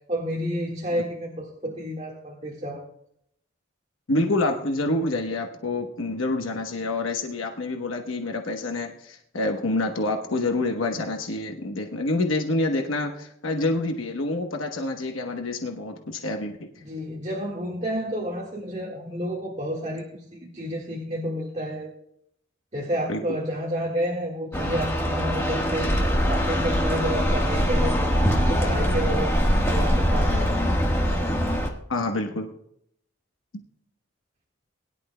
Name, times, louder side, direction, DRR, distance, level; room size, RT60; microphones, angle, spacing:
voice 1, 0.1-2.9 16.8-21.9 22.7-28.1 28.5-30.7, equal, 35° right, -2 dB, 1.6 m, -30 dB
voice 2, 4.1-16.7 23.1-23.2 31.9-32.5 33.5-33.6, left 2 dB, 85° left, 3 dB, 1.1 m, -27 dB
sound 1, 24.5-31.7, equal, 10° left, 1.4 m, -23 dB
21.0 x 11.0 x 2.2 m, 0.71 s
head